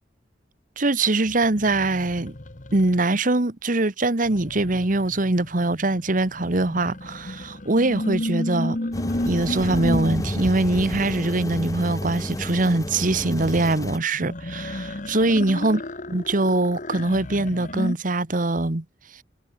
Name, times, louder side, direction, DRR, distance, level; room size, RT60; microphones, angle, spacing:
voice 1, 0.8-2.3 2.7-8.8 9.2-15.8 16.1-18.8, right 2 dB, 50° right, 1.4 m, -23 dB
sound 1, 1.3-3.2 4.2-11.1 14.1-17.9, left 1 dB, 45° left, 1.4 m, -32 dB
sound 2, 8.9-14.0, equal, 20° left, 2.6 m, -30 dB
head